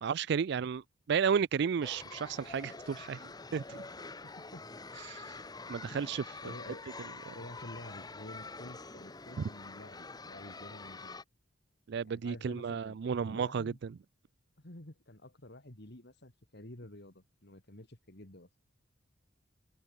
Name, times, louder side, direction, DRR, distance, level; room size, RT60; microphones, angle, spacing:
voice 1, 0.0-3.8 5.1-5.4 5.7-6.2 7.3-7.4 11.9-13.9, right 6 dB, 60° right, 0.4 m, -33 dB
sound 1, 1.8-11.2, left 3 dB, 20° left, 1.2 m, -46 dB
voice 2, 3.9-4.6 5.9-6.1 6.4-6.8 7.3-11.2 12.0-13.8 14.6-18.5, left 1 dB, 55° left, 3.1 m, -50 dB
head